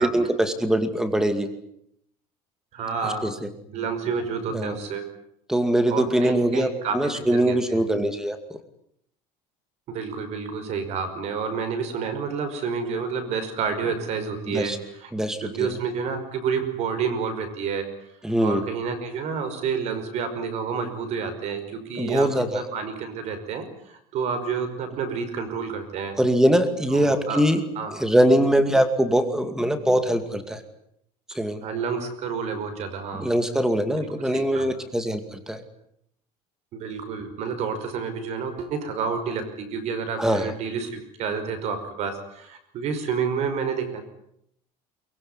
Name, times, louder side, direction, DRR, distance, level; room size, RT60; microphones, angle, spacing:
voice 1, 0.0-1.5 3.2-3.3 4.5-4.8 5.5-6.7 6.9-8.4 14.5-14.8 15.1-15.7 18.2-18.6 22.0-22.6 26.2-27.6 27.9-30.6 31.3-31.6 33.2-35.6 40.2-40.5, right 1 dB, 5° right, 9 dB, 2.4 m, -22 dB
voice 2, 2.7-5.0 5.9-7.8 9.9-14.7 15.0-15.1 15.4-17.9 18.4-26.2 26.9-27.4 27.8-27.9 31.6-33.3 34.0-34.7 36.7-44.0, right 5 dB, 45° right, 9 dB, 5.4 m, -29 dB
23.5 x 22.0 x 9.8 m, 0.74 s
cardioid pair, 175°, 15 cm